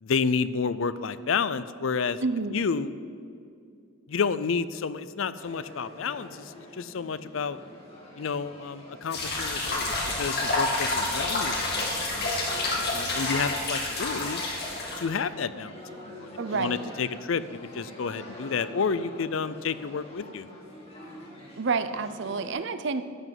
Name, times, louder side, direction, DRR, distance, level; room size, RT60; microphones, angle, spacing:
voice 1, 0.0-2.2 2.5-2.9 4.1-7.6 8.2-12.3 12.9-14.4 15.0-20.5, left 5 dB, 75° left, 15 dB, 0.5 m, -30 dB
voice 2, 2.2-2.6 16.4-16.8 21.6-23.0, right 4 dB, 60° right, 12 dB, 0.6 m, -29 dB
sound 1, 5.4-22.5, equal, 30° left, 2.8 m, -46 dB
sound 2, 9.1-15.0, left 2 dB, 55° left, 2.8 m, -28 dB
13.0 x 6.1 x 9.1 m, 2.4 s
head